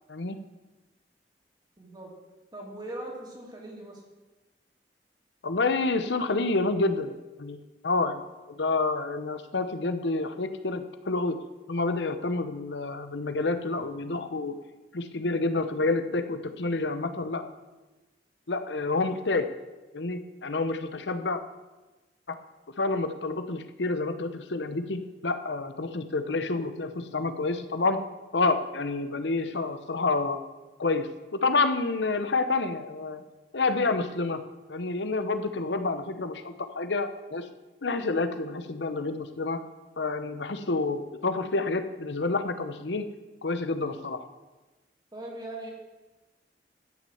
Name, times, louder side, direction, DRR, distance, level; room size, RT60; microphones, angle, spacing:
voice 1, 1.8-2.1 2.5-4.0 45.1-45.7, right 1 dB, 25° right, -2 dB, 2.8 m, -40 dB
voice 2, 5.4-8.2 8.5-11.4 11.7-14.5 14.9-17.5 18.5-19.5 19.9-21.4 22.3-22.4 22.8-28.0 28.3-30.4 30.8-33.2 33.5-34.4 34.7-37.5 37.8-39.6 40.0-43.1 43.4-44.2, left 3 dB, 85° left, 9 dB, 0.9 m, -28 dB
13.0 x 6.3 x 7.8 m, 1.2 s
head